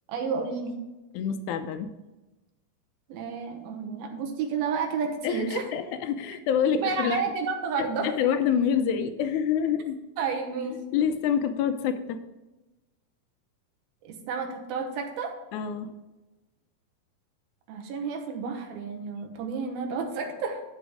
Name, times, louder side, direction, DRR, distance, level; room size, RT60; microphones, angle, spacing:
voice 1, 0.1-0.8 3.1-5.7 6.7-8.1 10.2-10.8 14.0-15.4 17.7-20.6, right 5 dB, 85° right, 4 dB, 3.0 m, -31 dB
voice 2, 1.1-1.9 5.2-7.2 7.8-10.0 10.9-12.2 15.5-15.9, left 8 dB, 85° left, 8 dB, 1.7 m, -27 dB
11.5 x 5.0 x 4.9 m, 1.1 s
omnidirectional pair, 4.2 m